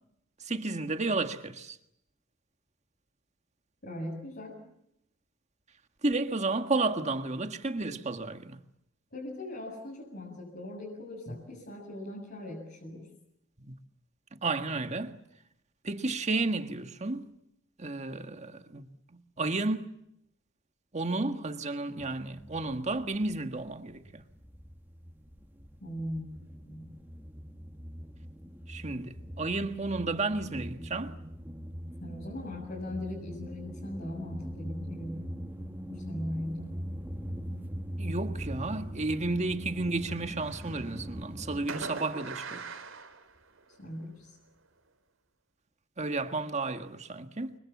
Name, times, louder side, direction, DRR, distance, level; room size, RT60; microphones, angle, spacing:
voice 1, 0.4-1.8 6.0-8.5 13.7-13.8 14.4-15.2 15.8-17.3 17.8-18.8 19.4-19.9 20.9-24.2 28.7-31.1 38.0-42.6 46.0-47.6, right 3 dB, 35° right, 1.7 m, -32 dB
voice 2, 3.8-4.6 9.1-13.1 25.8-26.9 32.0-35.3 35.8-36.8 37.3-37.4 43.8-44.4, left 1 dB, 50° left, 7.4 m, -39 dB
sound 1, 22.0-23.6 23.9-41.7, equal, 10° right, 1.6 m, -41 dB
Fireworks, 40.1-41.1 41.7-43.9, right 4 dB, 90° right, 3.5 m, -42 dB
30.0 x 25.0 x 7.3 m
head